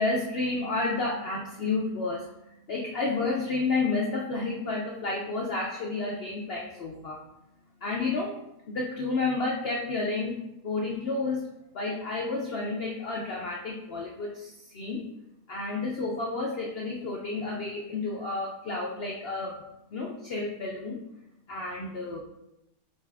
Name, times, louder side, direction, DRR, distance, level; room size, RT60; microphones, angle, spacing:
voice 1, 0.0-2.2 2.7-7.2 7.8-8.4 8.7-10.4 10.6-11.5 11.7-15.0 15.5-19.6 19.9-21.0 21.5-22.2, left 3 dB, 80° left, -1 dB, 0.5 m, -30 dB
5.2 x 2.4 x 3.4 m, 0.87 s
omnidirectional pair, 1.7 m